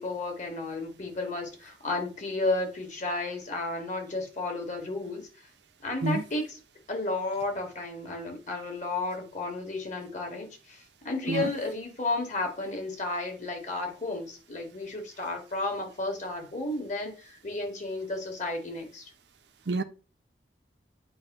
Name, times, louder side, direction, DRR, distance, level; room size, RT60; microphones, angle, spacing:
voice 1, 0.0-5.3 5.8-6.6 6.9-19.1, left 2 dB, 45° left, 2.2 m, -33 dB
voice 2, 6.0-6.2 11.3-11.5 19.7-19.8, right 2 dB, 75° right, 0.8 m, -27 dB
8.5 x 2.9 x 5.5 m
head